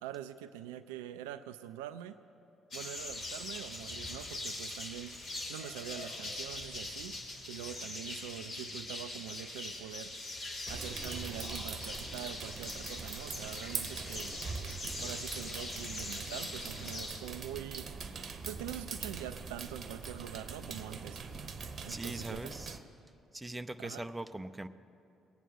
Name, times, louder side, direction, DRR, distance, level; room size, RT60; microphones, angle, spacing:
voice 1, 0.0-2.2 2.7-5.2 5.5-7.2 7.5-10.2 10.7-14.4 15.0-17.9 18.4-21.2 21.8-22.5 23.8-24.0, right 11 dB, 75° right, 12 dB, 0.4 m, -44 dB
sound 1, 2.7-17.1, left 2 dB, 50° left, 3.4 m, -42 dB
sound 2, 10.7-22.8, right 5 dB, 50° right, 1.0 m, -42 dB
voice 2, 21.9-22.8 23.3-24.7, right 2 dB, 15° right, 11 dB, 0.6 m, -41 dB
21.0 x 9.1 x 6.6 m, 2.7 s
figure-of-eight pair, 45°, 0 cm